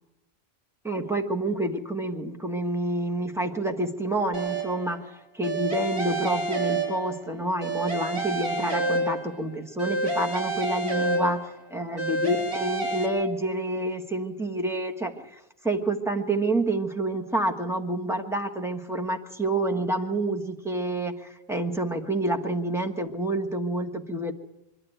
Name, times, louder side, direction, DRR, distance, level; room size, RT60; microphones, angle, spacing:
voice 1, 0.8-24.3, right 1 dB, 5° right, 4 dB, 1.4 m, -28 dB
sound 1, 4.3-4.9 5.4-7.3 7.6-9.4 9.8-11.6 12.0-13.1, right 2 dB, 30° right, 6.3 m, -29 dB
25.0 x 12.0 x 9.2 m, 0.93 s
omnidirectional pair, 1.0 m